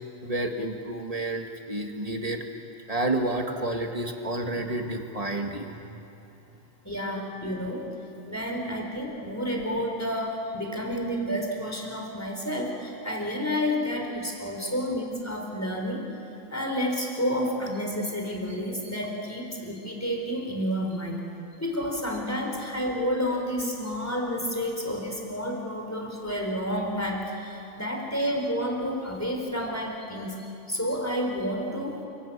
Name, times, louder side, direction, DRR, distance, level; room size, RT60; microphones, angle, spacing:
voice 1, 0.2-2.4 2.9-5.9, right 2 dB, 25° right, 3 dB, 0.8 m, -30 dB
voice 2, 6.8-7.9 8.3-16.0 16.5-21.2 21.6-32.0, equal, 5° left, 1 dB, 3.8 m, -30 dB
30.0 x 18.0 x 8.7 m, 2.8 s
omnidirectional pair, 3.5 m